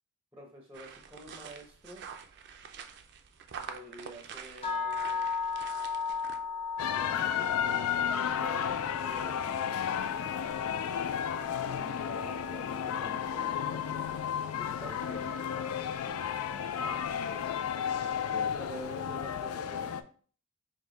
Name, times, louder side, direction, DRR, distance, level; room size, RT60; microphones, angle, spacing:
voice 1, 0.3-2.0 3.7-5.3 6.8-10.3 11.5-14.2 14.5-15.7 16.1-17.0 18.2-20.0, right 1 dB, 10° right, 0 dB, 0.6 m, -48 dB
sound 1, 0.7-6.4, right 6 dB, 50° right, 0.4 m, -46 dB
sound 2, 4.6-14.7, left 5 dB, 25° left, 0.9 m, -37 dB
sound 3, 6.8-20.0, left 8 dB, 70° left, 0.3 m, -33 dB
5.1 x 2.2 x 3.7 m, 0.43 s
head